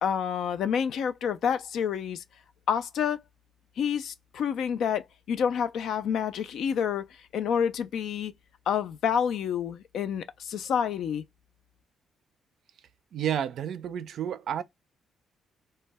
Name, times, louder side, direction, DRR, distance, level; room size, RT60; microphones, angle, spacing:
voice 1, 0.0-2.2 2.7-3.2 3.8-8.3 8.7-11.2, left 8 dB, 70° left, 0.3 m, -28 dB
voice 2, 13.1-14.6, right 9 dB, 65° right, 0.3 m, -30 dB
2.2 x 2.0 x 3.3 m
cardioid pair, 90°, 0 cm